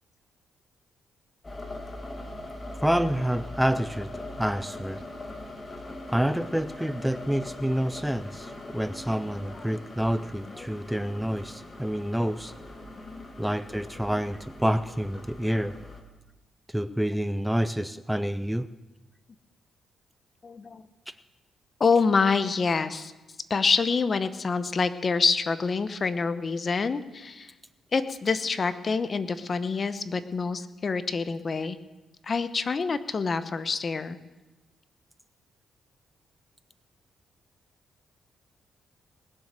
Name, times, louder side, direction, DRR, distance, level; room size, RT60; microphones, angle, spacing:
sound 1, 1.4-16.0, left 1 dB, 25° left, 2.4 m, -41 dB
voice 1, 2.8-5.0 6.1-12.5 13.4-15.7 16.7-18.7 21.1-21.2, equal, 5° right, 13 dB, 0.5 m, -28 dB
voice 2, 12.8-13.3 20.4-20.8 21.8-23.1 23.5-27.5 27.9-31.8 32.2-34.2, left 4 dB, 40° left, 12 dB, 0.9 m, -27 dB
20.0 x 7.5 x 6.6 m, 1.1 s
cardioid pair, 80°, 0 cm